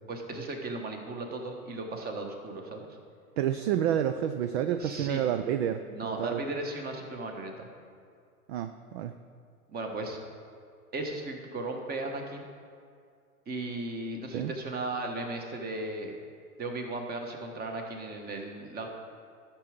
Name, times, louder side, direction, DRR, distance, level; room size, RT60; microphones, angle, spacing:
voice 1, 0.1-3.0 4.8-5.2 5.9-7.7 9.7-10.2 10.9-12.5 13.5-16.2 16.6-18.9, right 2 dB, 20° right, 3 dB, 1.3 m, -36 dB
voice 2, 3.4-6.4 8.5-9.1 14.3-14.5, right 10 dB, 45° right, 9 dB, 0.5 m, -29 dB
13.0 x 6.1 x 5.1 m, 2.2 s
hypercardioid pair, 110°, 46 cm